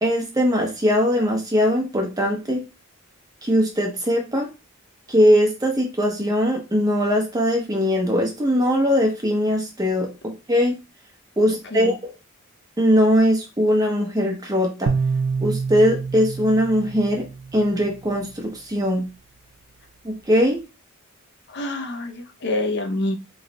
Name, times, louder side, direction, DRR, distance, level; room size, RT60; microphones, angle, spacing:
voice 1, 0.0-2.6 3.4-4.5 5.1-10.8 11.4-12.1 12.8-14.9 15.4-17.2 17.5-19.1 20.0-20.6, equal, 15° right, 0 dB, 0.8 m, -20 dB
sound 1, 14.9-18.1, right 5 dB, 85° right, 0.4 m, -27 dB
voice 2, 21.5-23.2, left 2 dB, 50° left, 3 dB, 0.6 m, -26 dB
3.1 x 2.3 x 3.9 m, 0.28 s
head